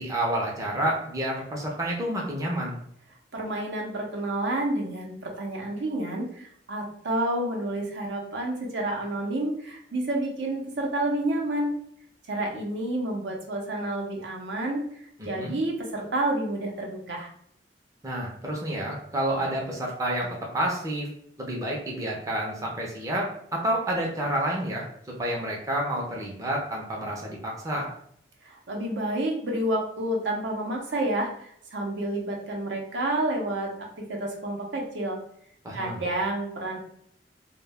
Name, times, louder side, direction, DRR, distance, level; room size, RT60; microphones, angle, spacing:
voice 1, 0.0-2.8 15.2-15.6 18.0-21.1 21.4-24.8 25.2-27.9 35.6-36.0, right 1 dB, 20° right, -3 dB, 0.5 m, -29 dB
voice 2, 3.3-11.7 12.3-14.8 15.3-17.3 28.4-35.2 35.7-36.8, right 1 dB, 70° right, 0 dB, 0.6 m, -29 dB
2.1 x 2.1 x 3.3 m, 0.69 s
head